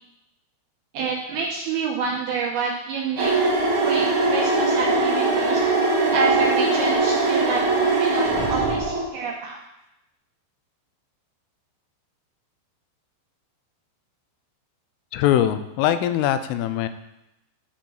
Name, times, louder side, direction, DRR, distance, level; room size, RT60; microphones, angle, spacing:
voice 1, 0.9-3.3 3.8-5.6 6.1-7.6 8.0-9.6, right 5 dB, 75° right, -2 dB, 2.3 m, -27 dB
sound 1, 3.2-9.0, right 3 dB, 50° right, 1.6 m, -21 dB
voice 2, 15.1-16.9, left 11 dB, 90° left, 11 dB, 3.2 m, -22 dB
12.0 x 5.2 x 7.3 m, 0.89 s
omnidirectional pair, 5.7 m